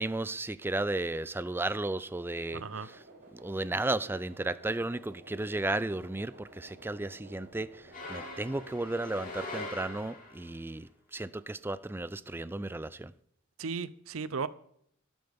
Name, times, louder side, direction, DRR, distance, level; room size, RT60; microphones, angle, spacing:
voice 1, 0.0-3.0 3.3-7.8 8.1-13.1, right 2 dB, 10° right, 0.4 m, -34 dB
sound 1, 2.4-9.3, right 1 dB, 55° right, 4.1 m, -54 dB
voice 2, 2.5-2.9 13.6-14.5, right 5 dB, 80° right, 0.7 m, -35 dB
sound 2, 7.9-10.5, left 2 dB, 40° left, 3.2 m, -42 dB
12.0 x 11.5 x 3.6 m
head